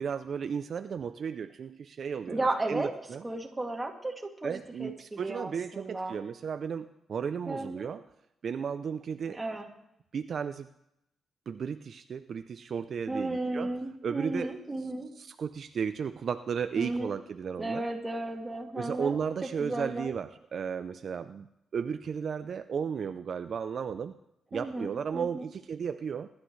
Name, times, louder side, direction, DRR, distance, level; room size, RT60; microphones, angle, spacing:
voice 1, 0.0-2.4 2.7-3.2 4.4-8.0 8.4-9.4 10.1-10.7 11.5-13.7 14.0-14.5 15.2-17.8 18.8-21.5 21.7-24.2 24.5-26.3, right 6 dB, 60° right, 10 dB, 0.5 m, -34 dB
voice 2, 2.3-2.9 3.2-6.2 7.5-7.9 9.3-9.7 13.1-15.1 16.8-17.2 17.6-20.1 24.5-25.5, right 2 dB, 15° right, 1 dB, 2.5 m, -34 dB
22.0 x 12.0 x 3.3 m, 0.82 s
cardioid pair, 95°, 0 cm